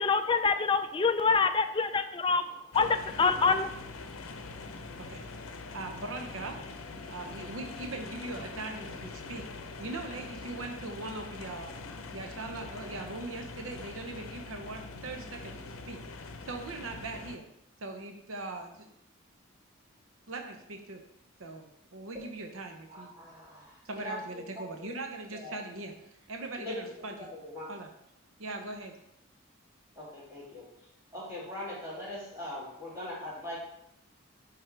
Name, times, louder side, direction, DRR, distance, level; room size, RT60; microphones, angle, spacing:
voice 1, 0.0-2.4 2.7-3.7, left 4 dB, 25° left, 8 dB, 0.3 m, -26 dB
sound 1, 2.7-17.4, left 3 dB, 85° left, 0.6 m, -43 dB
voice 2, 5.7-6.6 7.1-9.4 9.8-11.7 12.1-16.0 16.5-17.4 17.8-18.9 20.3-21.0 21.4-23.1 23.8-25.9 26.3-27.3 27.7-27.9 28.4-28.9, right 2 dB, 80° right, 3 dB, 0.8 m, -40 dB
voice 3, 22.9-23.7 24.0-25.0 25.3-25.5 26.6-27.1 27.3-27.7 30.0-30.6 31.1-33.6, left 1 dB, 15° right, -9 dB, 2.7 m, -41 dB
10.0 x 3.6 x 3.3 m, 0.78 s
head